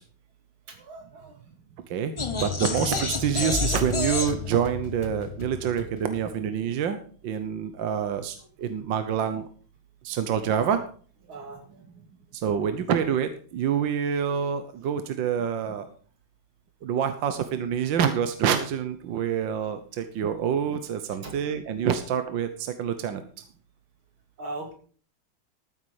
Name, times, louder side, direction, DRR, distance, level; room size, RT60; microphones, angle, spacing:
voice 1, 0.7-1.3 2.6-2.8 7.9-8.0 11.3-11.8 21.2-21.4 24.4-24.7, right 2 dB, 85° right, 3 dB, 3.3 m, -39 dB
voice 2, 1.9-7.0 7.2-9.5 10.0-10.8 12.3-15.9 16.8-23.2, right 8 dB, 70° right, 9 dB, 1.7 m, -27 dB
sound 1, 2.2-6.3, left 4 dB, 30° left, 0.5 m, -30 dB
13.5 x 9.5 x 4.9 m, 0.44 s
omnidirectional pair, 2.2 m